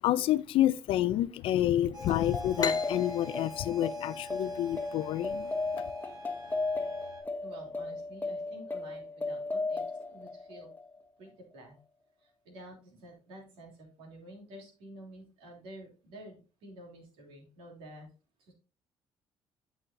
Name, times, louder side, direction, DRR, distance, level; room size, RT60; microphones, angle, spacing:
voice 1, 0.0-5.5, left 13 dB, 75° left, 0.5 m, -28 dB
sound 1, 1.9-7.2, left 1 dB, 55° right, 4.6 m, -46 dB
sound 2, 2.0-11.0, left 3 dB, 20° left, 1.1 m, -35 dB
sound 3, 2.6-6.0, left 7 dB, 45° left, 1.2 m, -39 dB
voice 2, 7.4-10.7 11.2-11.8 12.2-18.1 18.4-18.5, right 1 dB, 90° right, 3.1 m, -50 dB
9.8 x 6.1 x 2.7 m
cardioid pair, 95°, 9 cm